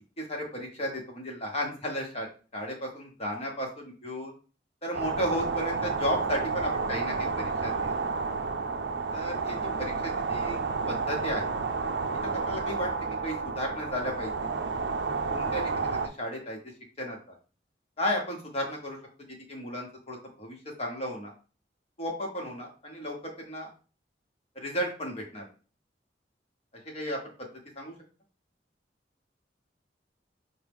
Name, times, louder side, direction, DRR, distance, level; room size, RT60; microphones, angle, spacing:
voice 1, 0.2-2.3 2.5-4.3 4.8-7.9 9.1-10.6 10.9-11.4 12.3-12.9 13.2-14.3 15.3-16.6 17.0-17.3 18.0-19.0 19.3-21.3 22.0-23.7 24.5-25.4 26.9-27.3 27.8-27.9, equal, 35° left, 1 dB, 1.1 m, -34 dB
sound 1, 4.9-16.1, right 4 dB, 80° right, 0.5 m, -31 dB
6.3 x 2.2 x 3.5 m, 0.37 s
head